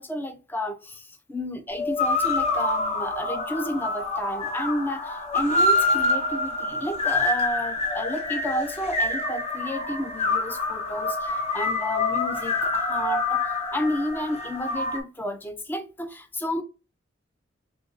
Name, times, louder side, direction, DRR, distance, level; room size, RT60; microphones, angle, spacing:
voice 1, 0.0-13.4 13.7-16.6, equal, 10° left, 0.5 m, -31 dB
sound 1, 1.7-15.0, left 2 dB, 35° left, 0.8 m, -26 dB
3.6 x 2.6 x 3.8 m
head